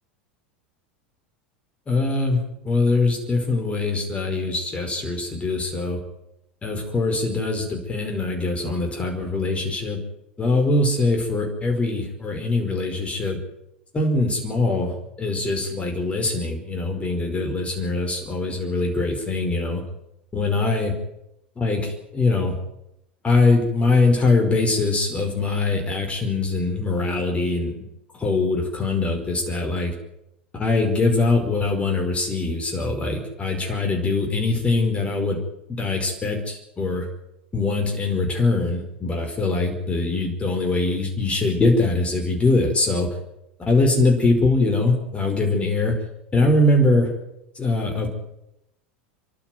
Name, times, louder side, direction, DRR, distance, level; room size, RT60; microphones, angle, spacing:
voice 1, 1.9-6.0 6.6-10.0 10.4-13.4 13.9-19.8 20.3-20.9 21.6-22.6 23.2-27.8 28.1-29.9 30.5-35.4 35.7-37.1 37.5-43.1 43.6-46.0 46.3-47.1 47.5-48.1, left 3 dB, 20° left, 3 dB, 5.1 m, -22 dB
30.0 x 12.0 x 9.4 m, 0.83 s
figure-of-eight pair, 85°, 6 cm